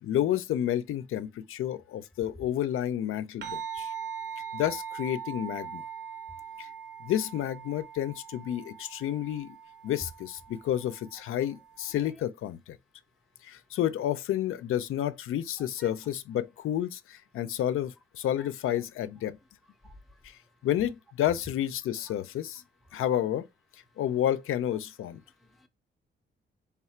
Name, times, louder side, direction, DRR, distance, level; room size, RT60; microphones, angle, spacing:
voice 1, 0.0-3.9 4.5-5.8 6.6-6.7 7.0-9.6 9.8-12.8 13.4-19.4 20.2-22.6 22.9-23.5 24.0-25.2, left 11 dB, 90° left, 0.4 m, -30 dB
sound 1, 3.4-12.1, right 8 dB, 55° right, 0.6 m, -41 dB
voice 2, 15.6-15.9 18.4-18.5 19.8-20.2 22.9-23.0 25.4-25.7, equal, ahead, 0.4 m, -54 dB
3.5 x 2.4 x 4.2 m
wide cardioid pair, 155°, 21 cm